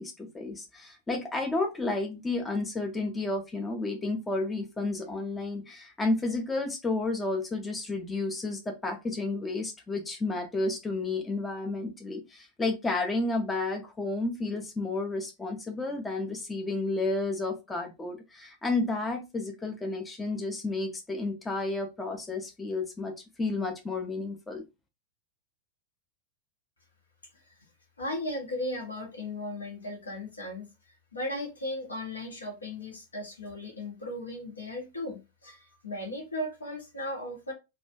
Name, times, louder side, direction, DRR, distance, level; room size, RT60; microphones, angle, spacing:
voice 1, 0.0-23.1 23.4-24.6, left 2 dB, 15° left, 3 dB, 0.5 m, -31 dB
voice 2, 27.3-27.6 28.0-37.5, left 1 dB, 75° left, 1 dB, 0.9 m, -37 dB
2.4 x 2.3 x 2.3 m, 0.25 s
figure-of-eight pair, 90°, 0 cm